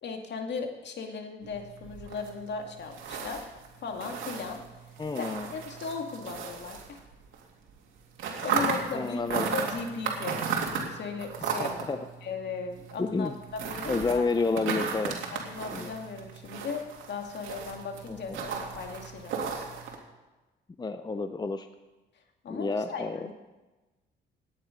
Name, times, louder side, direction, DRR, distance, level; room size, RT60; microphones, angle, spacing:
voice 1, 0.0-3.4 3.8-4.6 5.2-7.0 8.4-10.4 10.6-11.7 12.2-13.3 13.6-14.3 15.3-19.4 22.4-23.3, left 5 dB, 60° left, 3 dB, 2.2 m, -37 dB
sound 1, 1.4-7.4 7.7-20.0, right 6 dB, 80° right, 2.5 m, -35 dB
voice 2, 5.0-5.5 8.9-9.5 11.6-12.0 13.0-13.4 13.9-15.2 15.7-15.9 18.1-18.4 20.8-21.7 22.5-23.2, left 3 dB, 20° left, 9 dB, 0.7 m, -30 dB
17.0 x 9.8 x 5.2 m, 1.1 s
cardioid pair, 90°, 20 cm